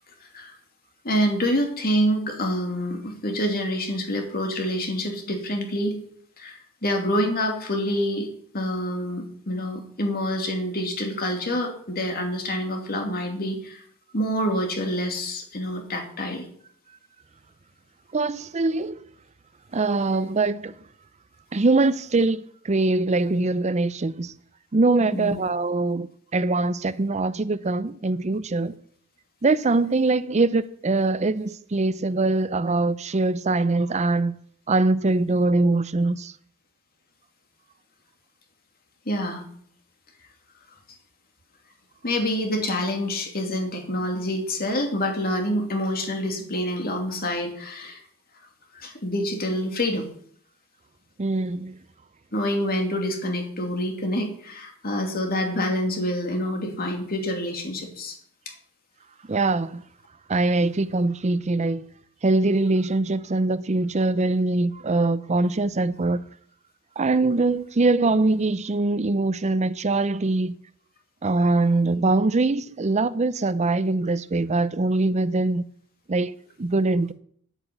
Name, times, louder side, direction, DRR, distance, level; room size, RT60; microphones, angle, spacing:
voice 1, 1.0-6.0 6.4-13.8 14.1-16.5 25.1-25.5 39.1-39.4 42.0-48.0 48.7-50.1 52.3-58.2, equal, 45° left, 2.7 m, -27 dB
voice 2, 18.1-19.0 19.7-20.7 21.5-24.3 24.7-26.1 26.3-28.8 29.4-34.3 34.7-36.3 51.2-51.8 59.3-59.8 60.3-61.8 62.2-66.2 67.0-70.5 71.2-75.6 76.1-77.1, right 3 dB, 30° right, 0.5 m, -23 dB
9.0 x 8.9 x 8.0 m
head